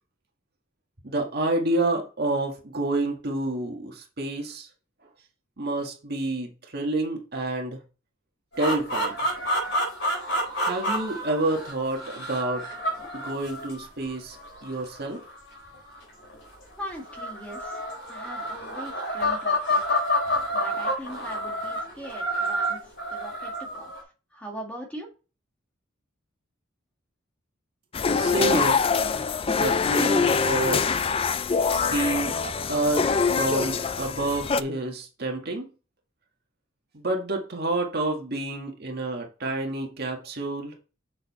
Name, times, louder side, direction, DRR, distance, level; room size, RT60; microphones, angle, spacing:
voice 1, 1.0-4.7 5.6-7.8 8.6-9.2 10.6-12.7 13.1-14.4 14.6-15.2 28.2-28.8 29.5-30.9 31.7-35.7 36.9-40.7, right 2 dB, 50° right, 1.7 m, -28 dB
sound 1, 8.5-16.3 17.0-24.0, equal, 55° left, 4.1 m, -29 dB
voice 2, 16.8-17.8 18.1-19.8 20.5-23.9 24.3-25.1, equal, 5° left, 2.0 m, -40 dB
sound 2, 27.9-34.6, left 5 dB, 25° left, 0.3 m, -24 dB
7.0 x 6.4 x 4.2 m
head